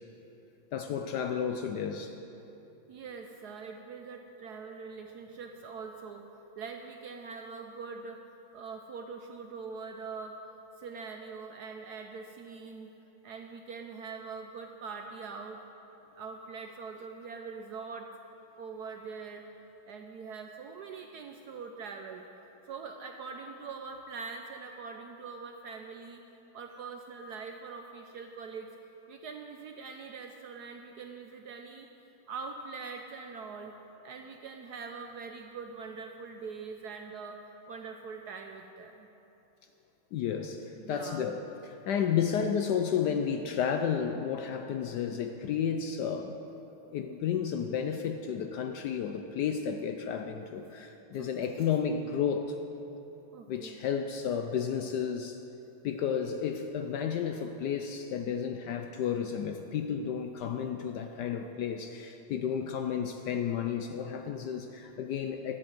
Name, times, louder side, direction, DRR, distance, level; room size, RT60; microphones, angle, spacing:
voice 1, 0.7-2.1 40.1-46.4 46.9-52.6 53.5-55.4 55.8-65.6, left 7 dB, 70° left, 6 dB, 1.0 m, -32 dB
voice 2, 2.9-8.2 8.5-10.4 10.8-12.9 13.2-15.6 16.1-18.1 18.6-19.4 19.9-22.3 22.7-26.2 26.5-28.7 29.1-31.9 32.3-33.7 34.0-37.4 37.7-39.1 40.8-41.4 51.1-51.6 53.3-53.8, right 5 dB, 70° right, 4 dB, 1.0 m, -43 dB
12.0 x 7.7 x 8.0 m, 3.0 s
omnidirectional pair, 2.2 m